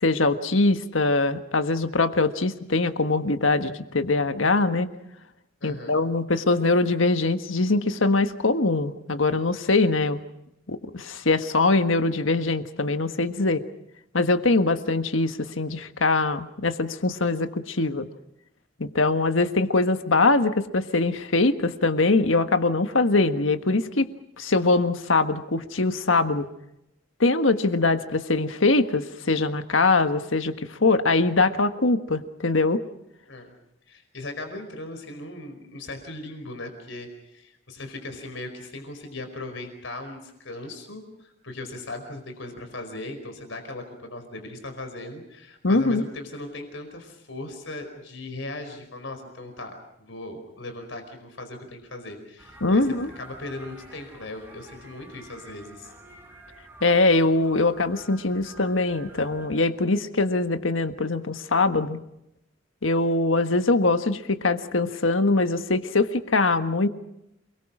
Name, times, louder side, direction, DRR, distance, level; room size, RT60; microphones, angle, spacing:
voice 1, 0.0-4.9 5.6-10.2 10.7-13.6 14.1-18.1 18.8-24.0 24.4-26.5 27.2-32.8 45.6-46.0 52.6-53.1 56.8-62.0 62.8-66.9, left 3 dB, 90° left, 9 dB, 1.6 m, -22 dB
voice 2, 5.6-6.0 33.3-33.5 33.8-55.9, left 2 dB, 75° left, 6 dB, 4.9 m, -38 dB
sound 1, 52.4-59.5, right 2 dB, 10° right, 7.6 m, -49 dB
28.5 x 22.0 x 6.2 m, 0.82 s
head